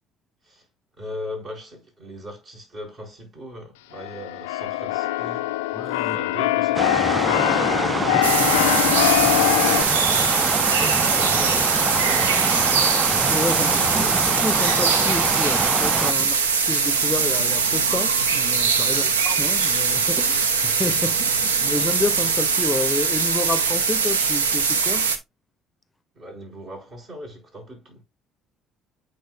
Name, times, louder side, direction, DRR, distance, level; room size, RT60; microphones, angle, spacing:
voice 1, 1.0-5.5 6.0-6.9 7.5-9.0 9.7-10.3 10.8-12.7 13.6-14.1 16.2-16.3 18.9-19.2 26.1-28.0, equal, 50° right, 4.5 m, -39 dB
Keyboard (musical), 3.9-9.8, left 17 dB, 75° left, 0.3 m, -22 dB
voice 2, 5.7-6.2 7.2-7.8 13.1-25.1, left 2 dB, 20° left, 0.6 m, -30 dB
sound 1, 6.7-16.1, right 3 dB, 25° right, 0.3 m, -25 dB
sound 2, 8.2-25.2, right 5 dB, 85° right, 0.6 m, -21 dB
9.2 x 4.4 x 2.3 m
hypercardioid pair, 55°, 0 cm